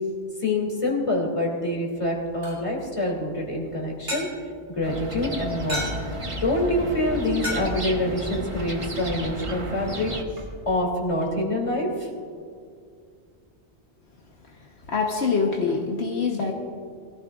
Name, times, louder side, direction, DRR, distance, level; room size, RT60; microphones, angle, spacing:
voice 1, 0.4-4.3 4.7-5.9 6.4-10.1 10.7-12.1, left 1 dB, 25° left, -2 dB, 2.8 m, -26 dB
sound 1, 1.9-11.3, equal, 85° right, 3.6 m, -39 dB
sound 2, 4.8-10.2, right 1 dB, 30° right, 1.1 m, -33 dB
voice 2, 14.5-16.5, left 5 dB, 70° left, 0 dB, 1.4 m, -25 dB
22.0 x 14.0 x 2.4 m, 2.3 s
omnidirectional pair, 1.2 m